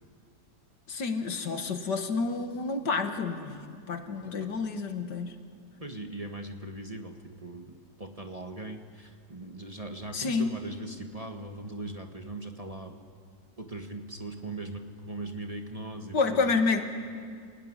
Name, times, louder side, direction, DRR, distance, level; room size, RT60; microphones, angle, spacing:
voice 1, 0.9-5.3 10.1-10.6 16.1-16.8, left 4 dB, 75° left, 6 dB, 2.3 m, -29 dB
voice 2, 5.8-13.0 13.6-16.6, right 2 dB, 20° right, 3 dB, 1.3 m, -40 dB
28.5 x 18.5 x 9.9 m, 2.2 s
omnidirectional pair, 1.9 m